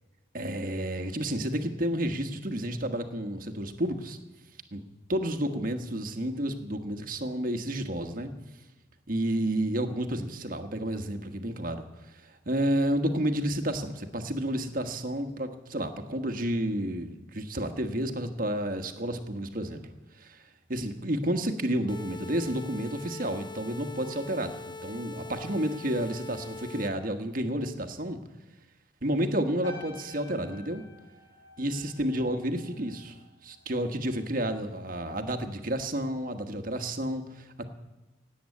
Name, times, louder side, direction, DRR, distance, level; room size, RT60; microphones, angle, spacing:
voice 1, 0.3-4.2 4.7-4.8 5.1-8.3 9.1-11.8 12.2-19.8 20.2-20.4 20.7-28.2 29.0-30.8 31.6-33.2 33.4-37.7, right 1 dB, 45° right, 6 dB, 1.4 m, -31 dB
sound 1, 21.9-26.9, left 3 dB, 25° left, 1.1 m, -42 dB
sound 2, 29.6-34.2 34.5-34.9, left 2 dB, 80° left, 6.7 m, -49 dB
17.5 x 8.6 x 8.4 m, 1.1 s
head